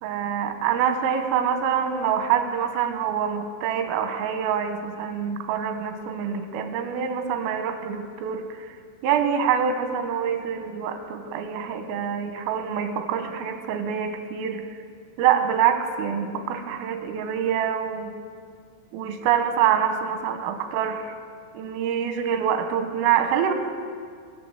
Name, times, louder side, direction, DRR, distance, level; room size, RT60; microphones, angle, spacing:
voice 1, 0.0-8.8 9.0-14.7 15.2-18.1 18.9-21.0 21.6-23.5, right 8 dB, 90° right, 7 dB, 3.7 m, -25 dB
20.0 x 7.1 x 9.0 m, 2.1 s
omnidirectional pair, 5.7 m